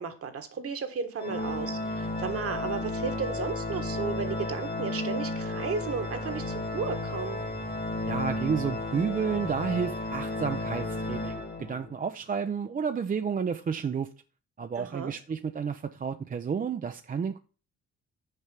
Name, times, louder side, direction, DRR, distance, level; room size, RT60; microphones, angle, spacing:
voice 1, 0.0-7.4 14.8-15.1, right 5 dB, 50° right, 1.5 m, -34 dB
Organ, 1.2-12.0, left 2 dB, 30° left, 1.4 m, -33 dB
sound 1, 5.7-11.3, right 3 dB, 75° right, 2.8 m, -51 dB
voice 2, 8.1-14.1 14.6-17.4, right 6 dB, 30° right, 0.5 m, -31 dB
6.7 x 4.5 x 6.8 m
cardioid pair, 90°, 30 cm